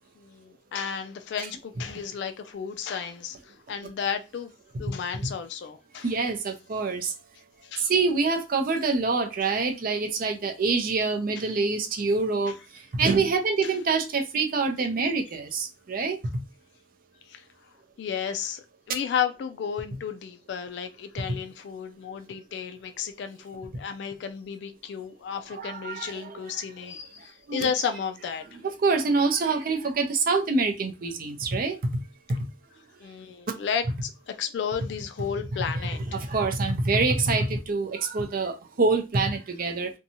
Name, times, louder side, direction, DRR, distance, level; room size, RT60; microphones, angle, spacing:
voice 1, 0.2-4.5 4.8-6.1 7.6-7.9 12.5-12.6 13.6-13.7 17.2-17.5 18.0-28.5 33.0-36.2, left 7 dB, 70° left, 0.3 m, -33 dB
voice 2, 6.0-7.1 7.8-12.6 12.9-16.2 25.5-26.3 27.5-27.7 28.6-31.9 32.3-32.5 36.1-39.9, right 4 dB, 55° right, 0.5 m, -26 dB
2.7 x 2.2 x 2.8 m
head